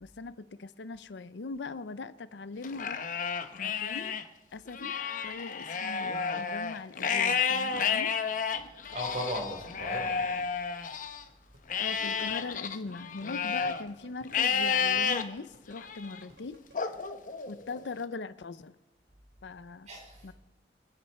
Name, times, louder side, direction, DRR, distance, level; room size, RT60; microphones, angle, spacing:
voice 1, 0.0-3.1 3.6-4.2 4.5-8.2 11.8-16.9 17.5-18.7 19.4-19.9 20.2-20.3, left 3 dB, 75° left, 0.6 m, -41 dB
Livestock farm animals working animals, 2.6-4.2 4.7-11.2 11.7-13.8 14.3-15.2 15.8-16.2 16.7-17.8, left 6 dB, 45° left, 0.9 m, -31 dB
voice 2, 8.9-10.2 19.9-20.3, equal, 40° right, 4.0 m, -37 dB
sound 1, 11.5-16.7, right 1 dB, 85° right, 3.0 m, -56 dB
27.0 x 9.7 x 4.3 m
head